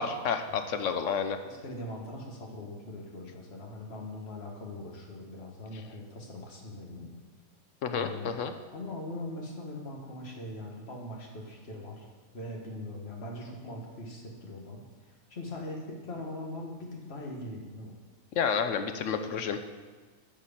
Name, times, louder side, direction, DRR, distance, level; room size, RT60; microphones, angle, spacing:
voice 1, 0.0-1.4 7.8-8.5 18.4-19.6, left 6 dB, 65° left, 8 dB, 1.0 m, -30 dB
voice 2, 1.4-7.1 7.9-8.3 8.7-12.1 12.3-17.9, left 1 dB, 50° left, -1 dB, 1.8 m, -41 dB
10.5 x 4.7 x 7.2 m, 1.4 s
omnidirectional pair, 1.5 m